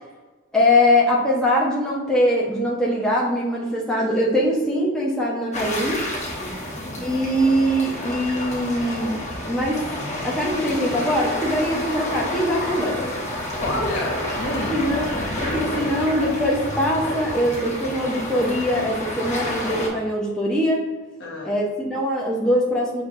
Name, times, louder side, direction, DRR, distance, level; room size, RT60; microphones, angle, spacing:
voice 1, 0.5-6.0 7.0-9.2 9.5-9.8 10.2-13.2 14.7-15.1 15.4-20.9 21.4-23.0, equal, 5° left, -5 dB, 0.6 m, -22 dB
sound 1, 5.5-19.9, left 1 dB, 35° left, 1.2 m, -29 dB
voice 2, 6.4-7.1 13.6-14.7 21.2-21.5, left 1 dB, 60° left, -2 dB, 1.1 m, -30 dB
6.4 x 2.6 x 2.4 m, 1.3 s
head